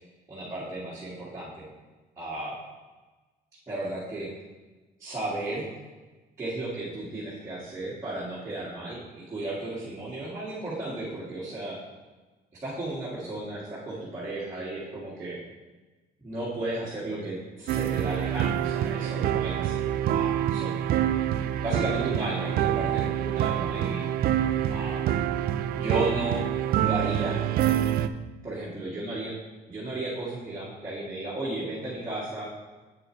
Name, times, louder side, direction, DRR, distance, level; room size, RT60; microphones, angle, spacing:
voice 1, 0.3-1.7 2.2-2.6 3.7-4.3 5.0-5.7 6.4-11.8 12.6-15.4 16.2-20.8 21.6-24.0 24.7-25.2 25.7-26.5 26.8-27.4 28.4-29.3 29.7-32.5, right 2 dB, 20° right, -11 dB, 2.0 m, -34 dB
sound 1, 17.7-28.1, right 11 dB, 65° right, 0.4 m, -26 dB
8.1 x 6.8 x 3.2 m, 1.2 s
cardioid pair, 110°, 17 cm